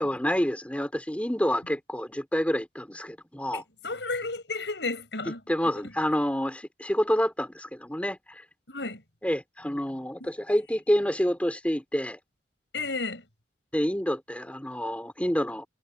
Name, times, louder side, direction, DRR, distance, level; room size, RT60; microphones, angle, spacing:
voice 1, 0.0-3.6 5.5-8.4 9.2-12.2 13.7-15.6, equal, 10° left, 3.2 m, -28 dB
voice 2, 3.5-6.0 8.7-9.0 10.2-10.3 12.7-13.3, left 3 dB, 80° left, 7.8 m, -33 dB
head